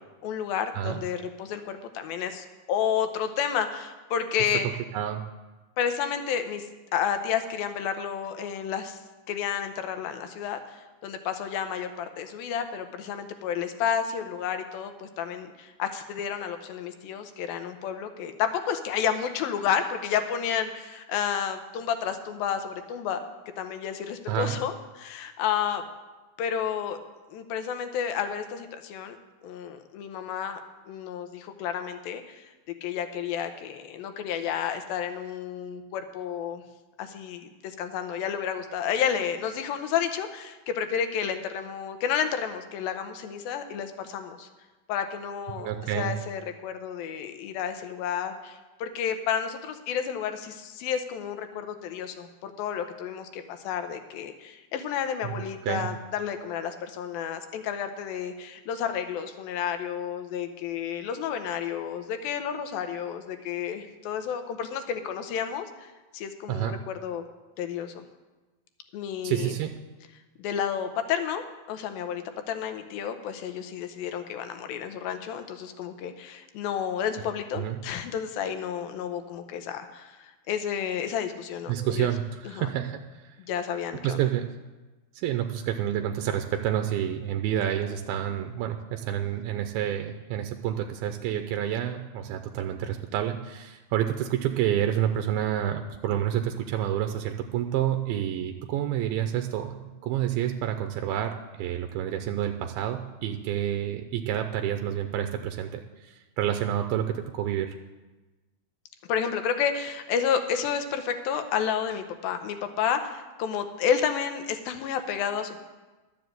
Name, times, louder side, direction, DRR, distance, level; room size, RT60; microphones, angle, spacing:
voice 1, 0.2-4.7 5.8-6.7 6.9-9.0 9.3-23.2 23.6-25.8 26.4-27.0 27.3-29.2 29.4-30.6 30.9-32.5 32.8-36.6 37.0-44.5 44.9-45.7 46.0-67.2 67.6-68.0 68.9-69.6 70.4-71.4 71.7-82.1 82.5-82.7 83.5-84.2 109.1-115.6, left 8 dB, 80° left, 8 dB, 2.6 m, -31 dB
voice 2, 45.6-46.1 55.2-55.3 55.6-55.9 66.5-66.7 69.2-69.7 77.5-77.8 81.7-83.0 84.0-84.5 85.2-99.8 100.0-107.7, right 11 dB, 90° right, 6 dB, 2.5 m, -29 dB
12.0 x 7.2 x 7.9 m, 1.2 s
omnidirectional pair, 4.3 m